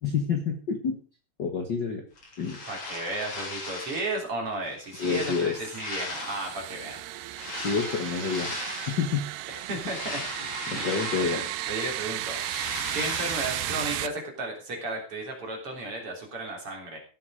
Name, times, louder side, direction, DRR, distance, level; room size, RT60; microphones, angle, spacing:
voice 1, 0.0-1.0 1.4-2.0 2.4-2.6 5.0-5.5 7.6-8.6 8.9-9.2 10.7-11.4, left 5 dB, 70° left, 4 dB, 1.0 m, -28 dB
sound 1, 2.2-4.2 4.6-6.7 7.3-9.1 9.6-11.8 12.1-14.0, left 2 dB, 35° left, 3.7 m, -38 dB
voice 2, 2.7-7.0 9.5-10.3 10.6-10.8 11.1-12.4 12.9-17.0, right 2 dB, 35° right, 0 dB, 4.0 m, -34 dB
sound 2, 6.1-14.1, right 14 dB, 85° right, 2.7 m, -34 dB
16.0 x 8.3 x 5.0 m, 0.37 s
omnidirectional pair, 4.6 m